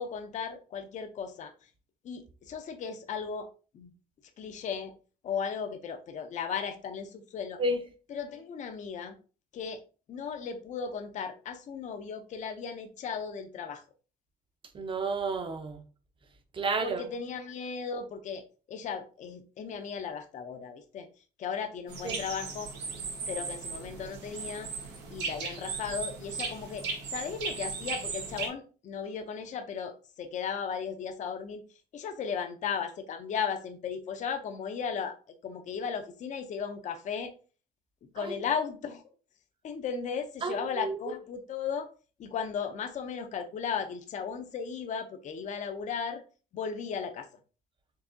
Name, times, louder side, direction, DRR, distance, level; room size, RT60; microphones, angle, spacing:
voice 1, 0.0-1.5 2.0-3.9 4.4-4.9 5.2-7.6 8.1-9.2 9.5-9.8 10.1-13.8 16.8-21.1 21.4-22.7 23.3-24.7 25.1-31.6 31.9-35.2 35.4-37.3 38.1-39.0 39.6-41.9 42.2-46.2 46.5-47.3, left 6 dB, 45° left, 0.6 m, -36 dB
voice 2, 14.7-15.8 16.5-17.1 22.0-22.2 38.2-38.3 40.4-41.1, right 3 dB, 30° right, 0.7 m, -31 dB
sound 1, 21.9-28.5, right 4 dB, 85° right, 1.2 m, -37 dB
4.6 x 2.6 x 2.6 m
cardioid pair, 110°, 17 cm